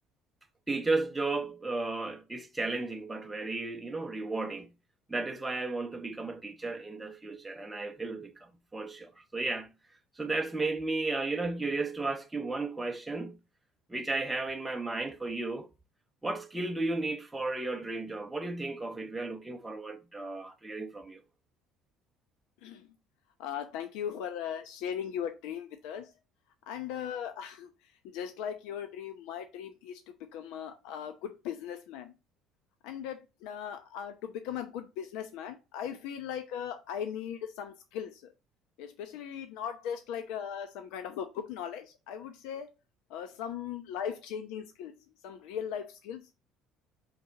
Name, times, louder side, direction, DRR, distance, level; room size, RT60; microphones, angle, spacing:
voice 1, 0.7-4.7 5.1-9.7 10.2-13.4 13.9-15.7 16.2-21.2, right 3 dB, 5° right, 0.6 m, -34 dB
voice 2, 23.4-26.1 26.7-27.7 28.0-30.0 30.3-32.1 32.8-38.3 38.8-42.7 43.1-44.9 45.2-46.4, left 8 dB, 80° left, 0.8 m, -38 dB
5.4 x 4.5 x 3.9 m
cardioid pair, 165°, 0 cm